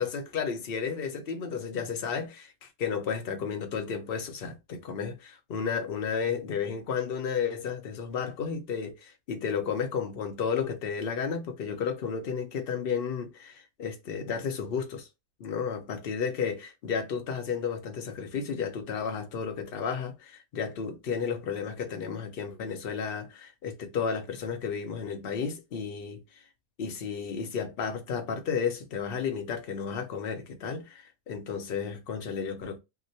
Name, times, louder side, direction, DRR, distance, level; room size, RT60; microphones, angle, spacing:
voice 1, 0.0-15.1 15.4-26.2 26.8-32.8, left 6 dB, 50° left, 0.8 m, -32 dB
2.9 x 2.1 x 4.0 m
omnidirectional pair, 1.5 m